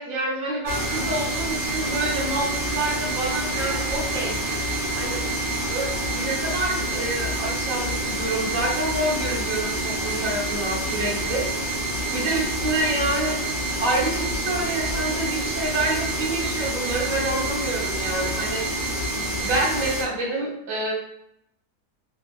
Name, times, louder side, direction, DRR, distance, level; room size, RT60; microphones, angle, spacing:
voice 1, 0.0-4.4 4.9-5.3 5.7-11.5 12.1-13.4 13.8-18.6 19.1-20.9, right 2 dB, 60° right, -3 dB, 1.1 m, -27 dB
sound 1, 0.7-20.0, right 1 dB, 30° right, 0.7 m, -27 dB
3.6 x 2.3 x 2.3 m, 0.77 s
omnidirectional pair, 1.8 m